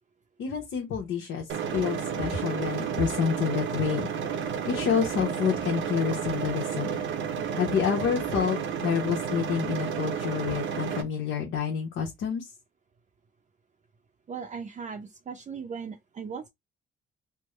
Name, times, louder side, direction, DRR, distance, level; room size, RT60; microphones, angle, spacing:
voice 1, 0.4-4.1 4.7-7.0 7.6-12.5, left 7 dB, 80° left, 0.9 m, -28 dB
sound 1, 1.5-11.0, right 7 dB, 70° right, 0.7 m, -31 dB
voice 2, 14.3-16.5, right 6 dB, 35° right, 0.5 m, -38 dB
3.5 x 2.1 x 3.1 m
cardioid pair, 90°, 20 cm